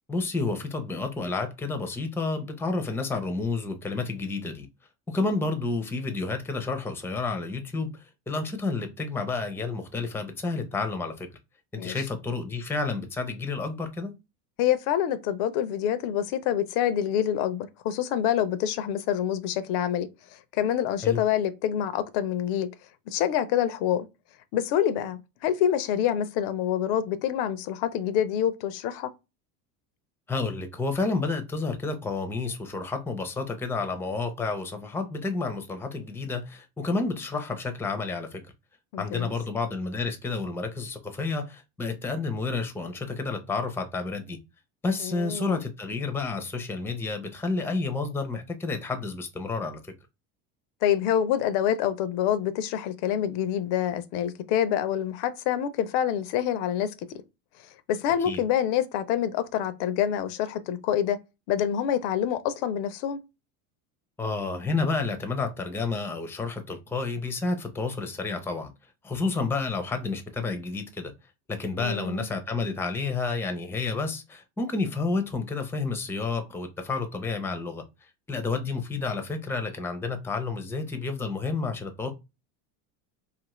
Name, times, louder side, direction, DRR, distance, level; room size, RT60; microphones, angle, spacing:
voice 1, 0.1-4.7 5.1-11.3 11.7-14.1 21.0-21.2 30.3-38.4 39.0-44.4 44.8-49.8 58.2-58.4 64.2-68.7 69.0-71.1 71.5-77.8 78.3-82.1, left 3 dB, 5° left, 0.5 m, -30 dB
voice 2, 14.6-22.7 23.1-24.1 24.5-29.1 38.9-39.3 45.0-45.6 50.8-56.9 57.9-61.2 61.5-63.2 71.8-72.2, left 10 dB, 65° left, 0.6 m, -26 dB
2.5 x 2.5 x 3.0 m
supercardioid pair, 90°, 44 cm